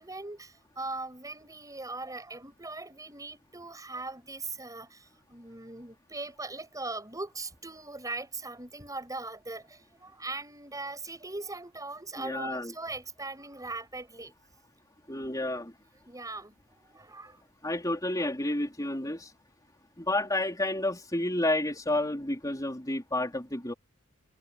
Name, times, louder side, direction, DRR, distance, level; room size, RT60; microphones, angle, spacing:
voice 1, 0.0-14.3 16.1-17.5, right 2 dB, 15° right, 7.0 m, -40 dB
voice 2, 12.2-12.7 15.1-15.7 17.6-19.3 20.0-23.7, left 1 dB, 15° left, 4.1 m, -30 dB
head